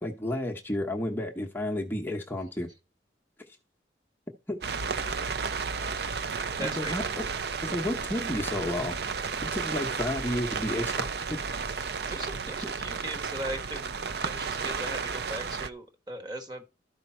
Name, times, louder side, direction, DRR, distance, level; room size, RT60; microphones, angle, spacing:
voice 1, 0.0-2.7 4.5-4.6 6.6-7.0 7.6-11.4, left 1 dB, 10° left, 0.9 m, -32 dB
sound 1, 4.6-15.7, right 5 dB, 60° right, 0.5 m, -33 dB
voice 2, 6.6-7.0 12.1-14.0 14.2-16.6, right 1 dB, 25° right, 1.3 m, -38 dB
12.5 x 5.2 x 4.3 m
head